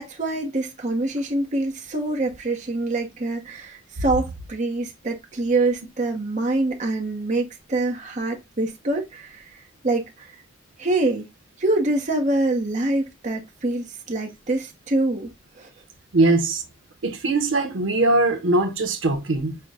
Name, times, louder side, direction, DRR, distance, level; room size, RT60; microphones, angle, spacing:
voice 1, 0.0-9.6 9.8-10.3 10.8-11.3 11.6-15.7, right 2 dB, 40° right, 0.9 m, -25 dB
voice 2, 16.1-16.6 17.0-19.6, right 2 dB, 90° right, 0.9 m, -21 dB
5.7 x 2.2 x 3.6 m
head